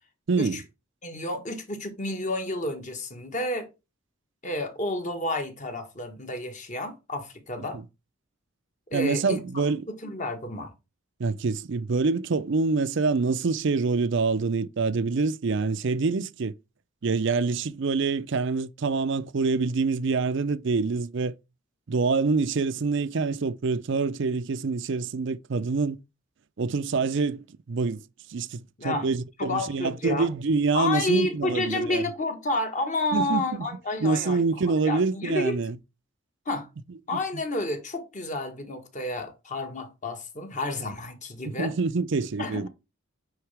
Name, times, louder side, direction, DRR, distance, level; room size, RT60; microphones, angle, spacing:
voice 1, 0.3-0.6 7.7-7.8 8.9-9.8 11.2-16.5 17.0-21.3 21.9-26.0 26.6-28.0 28.3-32.0 33.1-33.7 34.0-35.8 37.1-37.2 41.4-42.7, right 4 dB, 60° right, 0.5 m, -26 dB
voice 2, 1.0-3.7 4.4-7.8 8.9-10.7 28.8-29.1 29.4-30.3 30.7-35.6 36.4-36.7 37.1-41.7 42.4-42.7, left 2 dB, 35° left, 1.3 m, -30 dB
9.5 x 4.0 x 3.4 m
head